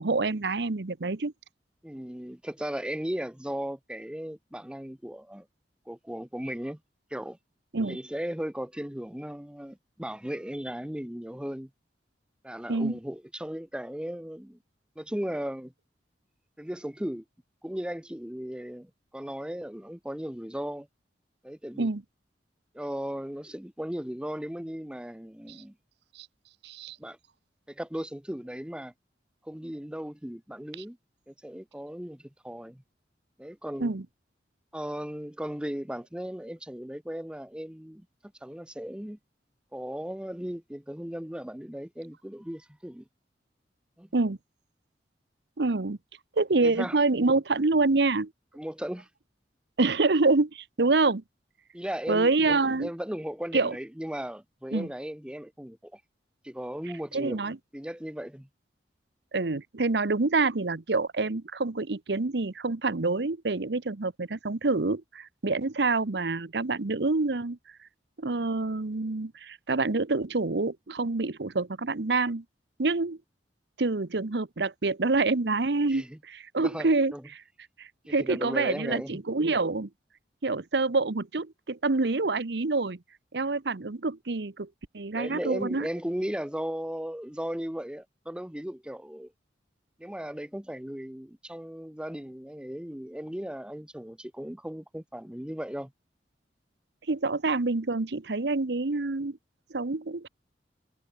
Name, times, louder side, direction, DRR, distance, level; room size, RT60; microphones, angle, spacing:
voice 1, 0.0-1.3 7.7-8.0 12.7-12.9 21.8-22.0 26.2-26.3 26.6-27.0 33.8-34.0 44.1-44.4 45.6-46.0 46.4-48.3 49.8-51.2 52.1-52.9 53.5-53.8 54.7-54.9 57.1-57.6 59.3-67.6 68.2-72.4 72.8-73.2 73.8-77.1 77.8-79.9 80.4-83.0 83.3-84.7 84.9-85.9 97.1-99.4 99.7-100.3, right 3 dB, 65° right, 0.9 m, -27 dB
voice 2, 1.8-5.5 5.9-6.8 7.1-7.4 7.8-11.7 12.4-14.6 15.0-15.7 16.6-17.2 17.6-20.9 21.4-21.9 22.7-25.7 27.0-27.2 27.7-28.9 29.4-31.0 31.3-32.8 33.4-33.9 34.7-38.1 38.4-39.2 39.7-43.0 44.0-44.1 46.6-47.0 48.5-49.1 51.7-56.0 56.4-57.4 57.7-58.5 75.9-76.2 76.6-77.2 78.1-79.2 85.1-89.3 90.0-95.9, equal, 5° right, 0.8 m, -36 dB
head